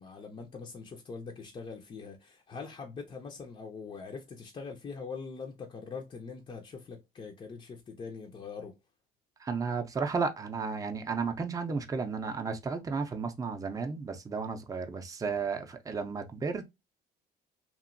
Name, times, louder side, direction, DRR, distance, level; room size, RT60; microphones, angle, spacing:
voice 1, 0.0-8.8, left 5 dB, 30° left, 0.5 m, -43 dB
voice 2, 9.4-16.6, right 5 dB, 20° right, 0.5 m, -33 dB
2.9 x 2.5 x 2.5 m
cardioid pair, 110°, 17 cm